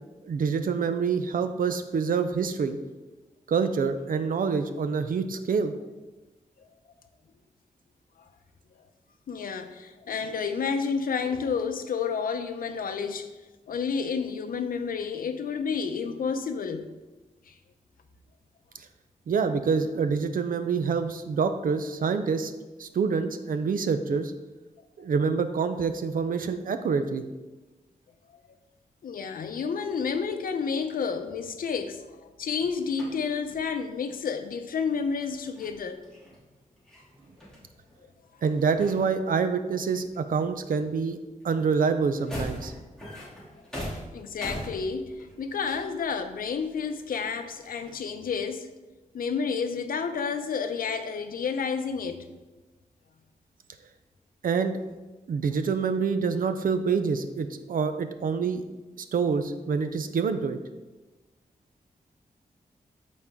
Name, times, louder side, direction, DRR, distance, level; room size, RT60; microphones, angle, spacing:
voice 1, 0.2-2.8 3.5-5.7 19.3-22.5 22.8-24.3 25.0-27.2 38.4-41.2 41.4-42.7 54.4-54.8 55.3-58.6 59.1-60.6, right 5 dB, 75° right, 0.6 m, -26 dB
voice 2, 9.3-13.3 13.7-16.9 17.5-17.6 29.0-36.0 44.1-48.7 49.1-52.2, left 5 dB, 90° left, 0.7 m, -30 dB
sound 1, 32.6-33.7 35.2-38.3 38.6-39.6 39.9-40.8 41.0-48.0, equal, 5° left, 2.5 m, -42 dB
13.0 x 4.3 x 3.6 m
wide cardioid pair, 135°, 14 cm